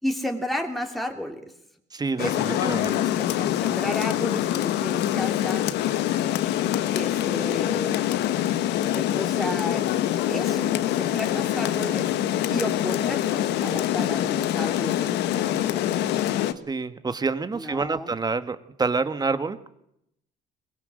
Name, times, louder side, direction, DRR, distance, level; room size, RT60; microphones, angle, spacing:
voice 1, 0.0-1.4 2.2-5.7 6.9-8.0 8.8-9.8 10.3-12.1 12.5-16.2 17.5-18.1, left 1 dB, ahead, 3 dB, 3.0 m, -33 dB
voice 2, 1.9-3.0 16.7-19.7, right 4 dB, 25° right, 12 dB, 1.7 m, -27 dB
Rain, 2.2-16.5, left 12 dB, 85° left, 1.6 m, -25 dB
23.0 x 20.0 x 7.7 m, 0.77 s
cardioid pair, 110°, 17 cm